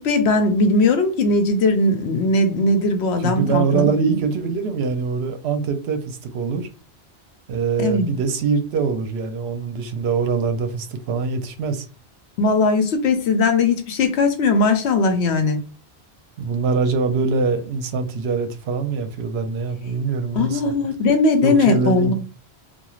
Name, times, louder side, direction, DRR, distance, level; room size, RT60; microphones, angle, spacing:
voice 1, 0.0-4.2 7.8-8.1 12.4-15.6 20.4-22.1, left 3 dB, 80° left, 0.9 m, -19 dB
voice 2, 3.2-6.7 7.5-11.9 16.4-20.7 21.4-22.1, right 5 dB, 75° right, 0.8 m, -23 dB
2.4 x 2.3 x 3.0 m
omnidirectional pair, 1.1 m